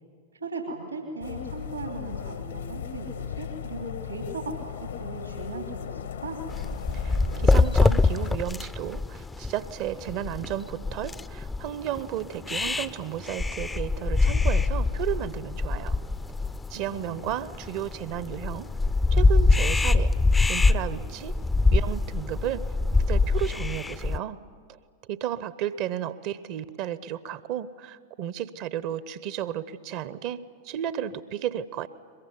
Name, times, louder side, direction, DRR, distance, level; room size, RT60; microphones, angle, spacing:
voice 1, 0.4-6.4 16.7-17.3, right 3 dB, 80° right, 1 dB, 3.2 m, -37 dB
sound 1, 1.2-8.3, left 9 dB, 65° left, 1.1 m, -37 dB
sound 2, 6.5-24.2, left 3 dB, 10° left, 0.6 m, -24 dB
voice 2, 6.9-16.0 16.7-18.7 19.1-20.1 20.5-21.3 21.7-22.6 23.1-24.4 25.1-31.9, right 11 dB, 45° right, 16 dB, 0.9 m, -33 dB
22.5 x 22.0 x 10.0 m, 2.1 s
figure-of-eight pair, 90°, 0 cm